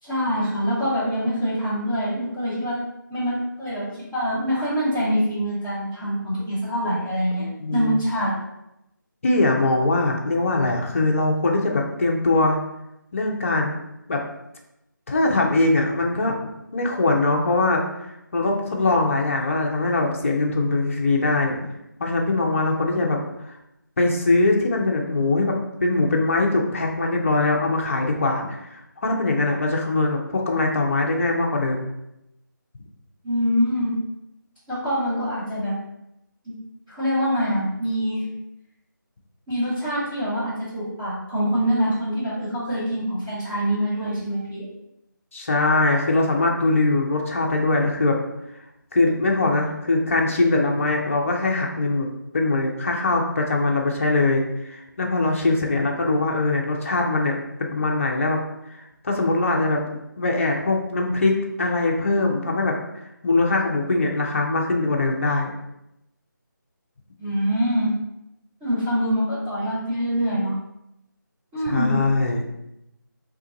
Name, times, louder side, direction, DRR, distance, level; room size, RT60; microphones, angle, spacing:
voice 1, 0.0-2.8 3.1-3.9 4.1-7.5 7.7-8.3 33.2-33.9 34.7-35.7 36.4-36.5 36.9-38.2 39.5-44.7 67.2-67.9 68.6-70.5 71.5-71.9, equal, 15° right, -15 dB, 1.0 m, -24 dB
voice 2, 7.4-8.0 9.2-12.6 13.1-13.7 14.1-14.2 15.1-16.4 16.7-21.6 22.0-23.2 23.4-23.5 24.0-25.5 25.8-31.8 45.3-48.2 48.9-52.1 52.3-58.4 58.7-59.8 60.2-62.8 63.2-65.5 71.6-72.5, left 2 dB, 40° left, 0 dB, 0.6 m, -22 dB
3.0 x 2.4 x 3.9 m, 0.87 s
figure-of-eight pair, 160°, 11 cm